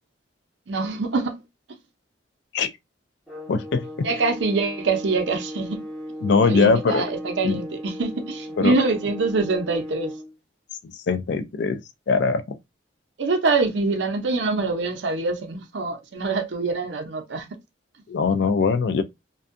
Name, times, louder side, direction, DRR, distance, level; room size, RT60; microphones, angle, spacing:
voice 1, 0.7-1.4 4.0-5.9 6.4-10.1 13.2-17.5, right 3 dB, 70° right, 0.6 m, -24 dB
sound 1, 3.3-10.3, equal, ahead, 0.9 m, -36 dB
voice 2, 3.5-3.9 6.2-7.0 7.4-7.6 8.6-8.7 11.1-11.8 12.1-12.6 18.1-19.0, left 4 dB, 60° left, 0.3 m, -21 dB
2.6 x 2.2 x 2.5 m
head